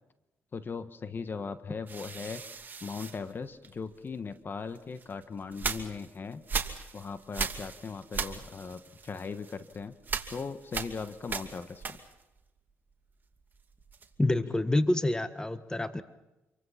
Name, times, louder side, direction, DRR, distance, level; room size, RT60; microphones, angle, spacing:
voice 1, 0.5-2.4 2.8-6.4 6.9-9.9 10.3-12.0 14.5-14.6, left 5 dB, 40° left, 11 dB, 1.4 m, -39 dB
sound 1, 1.9-4.1 4.7-12.4 12.7-14.3, right 5 dB, 35° right, 2.6 m, -38 dB
voice 2, 14.2-16.0, left 1 dB, 15° left, 11 dB, 1.4 m, -27 dB
27.0 x 23.5 x 5.8 m, 1.0 s
supercardioid pair, 70°, 5 cm